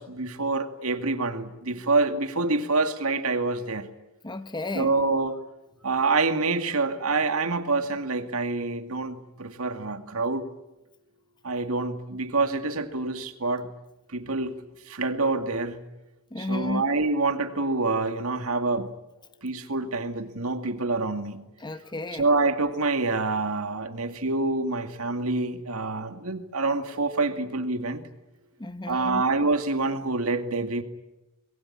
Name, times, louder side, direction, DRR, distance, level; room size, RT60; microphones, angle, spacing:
voice 1, 0.0-3.9 4.7-5.4 5.8-10.5 11.4-13.7 14.1-14.6 14.9-15.8 16.4-18.9 19.4-21.4 22.1-28.0 28.8-30.8, right 3 dB, 75° right, 2.2 m, -26 dB
voice 2, 4.2-4.9 16.3-16.8 21.6-22.3 28.6-29.2, left 2 dB, 20° left, 0.9 m, -32 dB
25.0 x 22.0 x 10.0 m
head